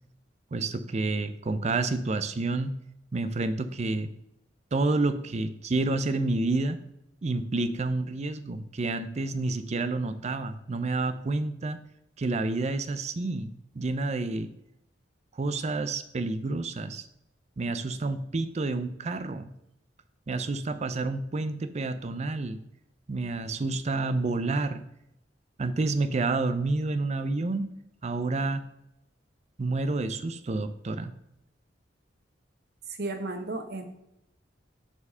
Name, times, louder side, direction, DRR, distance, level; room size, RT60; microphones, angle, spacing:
voice 1, 0.5-2.7 3.1-4.1 4.7-6.8 7.2-11.8 12.2-14.5 15.4-17.1 17.6-19.5 20.3-22.6 23.1-24.8 25.6-27.7 28.0-28.6 29.6-31.1, right 3 dB, 40° right, 11 dB, 0.5 m, -29 dB
voice 2, 33.0-33.9, right 2 dB, 60° right, 7 dB, 0.9 m, -33 dB
6.9 x 4.4 x 5.5 m, 0.84 s
head